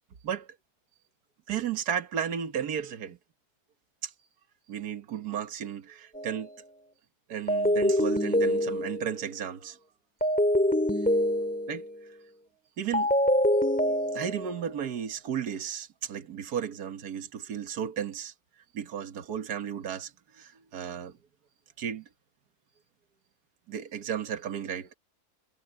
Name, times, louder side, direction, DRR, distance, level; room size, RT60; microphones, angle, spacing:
voice 1, 0.2-0.6 1.5-3.2 4.0-4.1 4.7-6.5 7.3-9.8 11.7-11.9 12.8-13.1 13.8-18.3 18.7-21.2 21.8-22.1 23.7-24.9, right 8 dB, 80° right, 1.8 m, -34 dB
sound 1, 6.1-6.4 7.5-9.2 10.2-11.9 12.9-14.6, equal, 5° left, 2.5 m, -25 dB
omnidirectional pair, 1.7 m